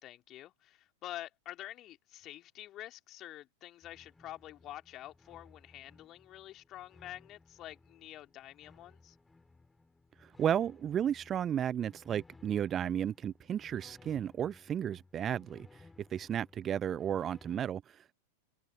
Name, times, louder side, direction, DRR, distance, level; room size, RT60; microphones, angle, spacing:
voice 1, 0.0-9.2, left 14 dB, 35° left, 3.4 m, -48 dB
sound 1, 3.8-17.6, left 3 dB, 10° left, 4.9 m, -60 dB
voice 2, 10.2-18.1, right 9 dB, 25° right, 0.3 m, -33 dB
figure-of-eight pair, 90°, 0 cm